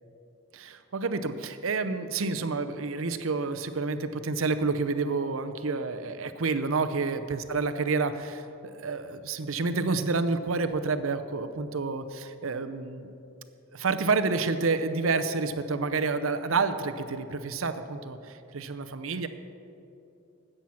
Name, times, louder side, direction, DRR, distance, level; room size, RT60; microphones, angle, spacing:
voice 1, 0.5-13.1 13.7-19.3, right 4 dB, 75° right, 10 dB, 0.7 m, -29 dB
13.5 x 9.0 x 5.8 m, 2.7 s
head